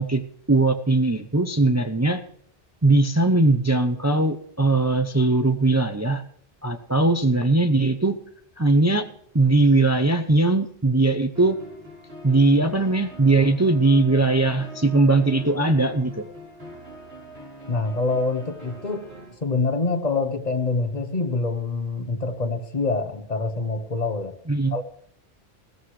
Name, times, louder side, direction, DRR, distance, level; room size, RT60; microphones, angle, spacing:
voice 1, 0.0-2.2 2.8-6.2 6.6-8.2 8.6-9.1 9.3-11.6 12.2-16.3 24.5-24.8, right 2 dB, 20° right, 0.6 m, -20 dB
sound 1, 11.3-19.4, right 1 dB, 75° right, 4.4 m, -43 dB
voice 2, 17.7-19.1 19.4-24.4 24.7-24.8, left 3 dB, 45° left, 1.1 m, -25 dB
20.5 x 15.0 x 3.2 m
omnidirectional pair, 1.1 m